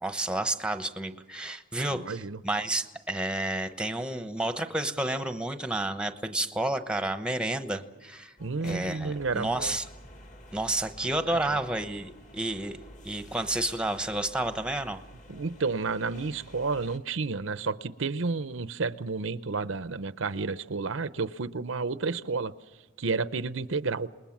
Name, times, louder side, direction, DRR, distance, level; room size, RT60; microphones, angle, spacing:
voice 1, 0.0-8.3 8.6-9.9 10.5-12.8 13.0-15.0, right 1 dB, 5° right, 9 dB, 1.0 m, -30 dB
voice 2, 1.8-2.4 8.4-9.8 11.3-11.6 15.3-22.5 23.0-24.1, right 4 dB, 70° right, 14 dB, 0.7 m, -31 dB
sound 1, 8.4-17.0, left 1 dB, 35° left, 2.1 m, -50 dB
28.0 x 20.5 x 7.3 m, 1.2 s
head